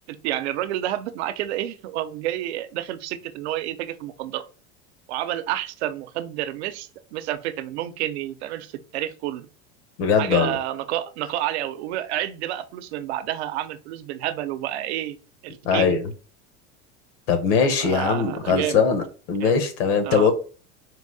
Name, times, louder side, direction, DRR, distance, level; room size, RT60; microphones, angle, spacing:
voice 1, 0.1-4.5 5.1-9.5 10.2-15.2 15.4-16.0 17.8-18.9 19.4-19.6 20.0-20.3, right 13 dB, 90° right, 0.7 m, -29 dB
voice 2, 10.0-10.6 15.6-16.1 17.3-19.0 19.3-20.3, left 6 dB, 80° left, 1.2 m, -21 dB
4.0 x 2.7 x 3.9 m
supercardioid pair, 170°, 32 cm